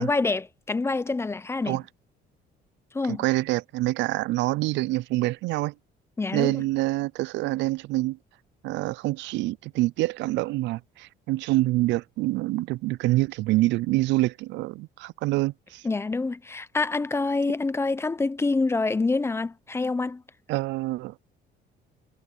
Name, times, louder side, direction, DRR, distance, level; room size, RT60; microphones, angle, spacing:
voice 1, 0.0-1.8 2.9-3.2 6.2-6.6 15.8-20.2, left 3 dB, 15° left, 0.6 m, -26 dB
voice 2, 3.1-5.7 6.3-8.2 8.6-15.8 20.5-21.1, right 18 dB, 80° right, 0.4 m, -26 dB
cardioid pair, 135°, 18 cm